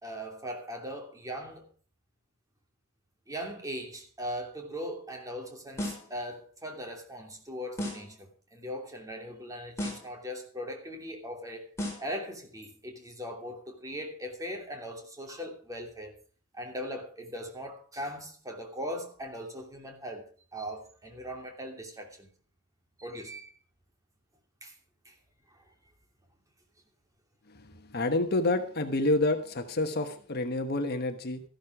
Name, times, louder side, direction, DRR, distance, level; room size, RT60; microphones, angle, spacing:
voice 1, 0.0-1.7 3.3-11.7 12.0-16.1 16.5-20.2 20.5-22.3 23.0-23.5 24.6-24.7 25.0-25.1 25.5-25.7, equal, 15° right, 2.9 m, -39 dB
sound 1, 5.8-6.2 7.8-8.2 9.8-10.2 11.8-12.2, left 1 dB, 15° left, 5.2 m, -35 dB
voice 2, 27.5-31.4, left 2 dB, 45° left, 1.2 m, -28 dB
14.0 x 12.0 x 4.8 m
head